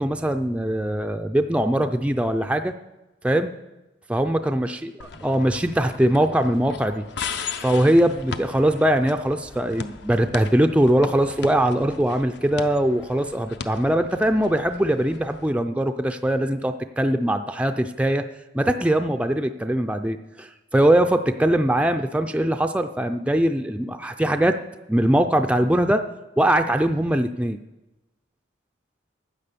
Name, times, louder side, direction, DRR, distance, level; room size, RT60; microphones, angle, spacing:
voice 1, 0.0-2.7 3.2-3.5 4.1-4.9 5.2-7.1 7.6-18.2 18.5-24.6 24.9-26.0 26.4-27.6, right 1 dB, 5° right, 6 dB, 0.3 m, -21 dB
sound 1, 5.0-15.5, left 5 dB, 60° left, 0.6 m, -38 dB
9.8 x 9.1 x 6.8 m, 1.1 s
head